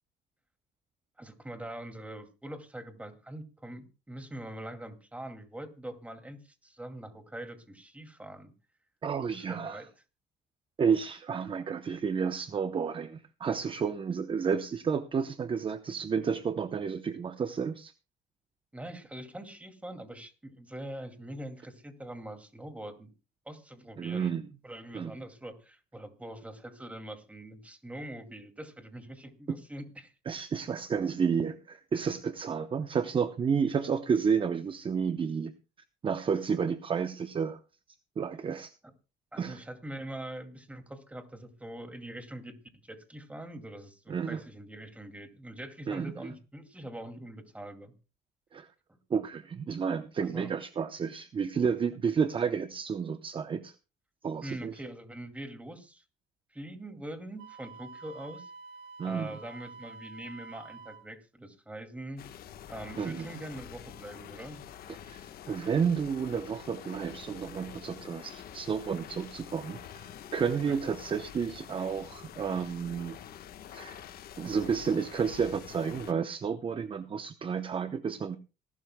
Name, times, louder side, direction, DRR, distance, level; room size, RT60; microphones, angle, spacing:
voice 1, 1.2-8.5 9.3-9.9 18.7-23.1 23.5-24.3 24.6-30.1 39.3-42.6 42.8-47.9 48.9-49.0 50.2-50.5 54.4-56.0 56.5-58.5 59.0-62.2 62.7-64.6 70.7-70.8, right 1 dB, 10° right, 6 dB, 2.3 m, -43 dB
voice 2, 9.0-9.8 10.8-17.9 24.0-24.5 24.9-25.1 29.5-29.6 30.3-35.5 36.0-37.6 38.2-38.7 39.4-39.6 44.1-44.4 45.9-46.3 48.5-48.7 49.1-53.7 54.2-54.8 59.0-59.3 63.0-63.3 65.0-73.2 73.7-74.0 74.4-78.4, right 6 dB, 30° right, 11 dB, 0.7 m, -31 dB
Wind instrument woodwind instrument, 57.4-61.1, right 4 dB, 90° right, 1.6 m, -48 dB
sound 1, 62.2-76.1, left 10 dB, 65° left, 1.2 m, -47 dB
26.0 x 12.0 x 2.2 m, 0.31 s
cardioid pair, 110°, 17 cm